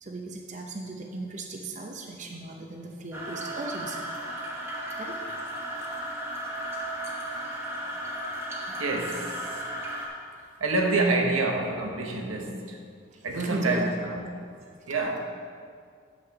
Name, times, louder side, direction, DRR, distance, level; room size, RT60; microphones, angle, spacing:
voice 1, 0.0-4.1 5.0-5.2 7.9-8.0 13.1-13.8 14.8-14.9, right 2 dB, 35° right, 1 dB, 0.7 m, -37 dB
sound 1, 3.1-10.1, equal, 10° right, 1.1 m, -35 dB
voice 2, 8.7-9.7 10.6-12.8 13.2-14.2 14.9-15.2, right 2 dB, 85° right, 2 dB, 1.1 m, -27 dB
8.0 x 6.2 x 5.8 m, 2.1 s
head